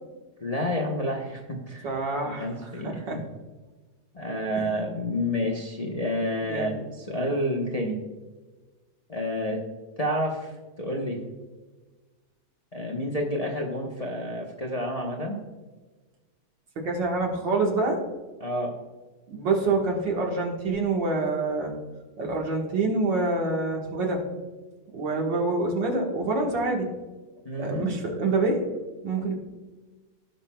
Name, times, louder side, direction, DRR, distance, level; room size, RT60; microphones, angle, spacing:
voice 1, 0.4-1.9 2.4-3.0 4.1-8.0 9.1-9.6 10.0-11.2 12.7-15.4 18.4-18.7 27.4-27.9, left 1 dB, 35° left, -1 dB, 0.7 m, -29 dB
voice 2, 1.8-3.2 4.6-4.7 6.5-6.8 16.8-18.0 19.3-21.7 22.2-24.2 24.9-26.9 27.6-28.6 29.0-29.4, right 3 dB, 85° right, 0 dB, 2.2 m, -26 dB
15.5 x 5.8 x 2.2 m, 1.3 s
omnidirectional pair, 1.9 m